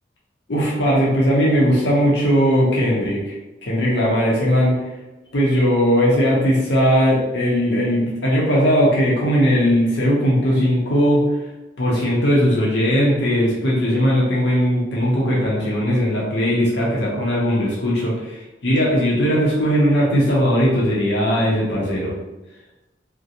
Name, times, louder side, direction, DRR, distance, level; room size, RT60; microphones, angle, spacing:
voice 1, 0.5-3.4 3.6-4.8 5.3-11.2 11.8-22.1, equal, 70° left, -5 dB, 0.7 m, -18 dB
2.4 x 2.1 x 2.7 m, 1.1 s
head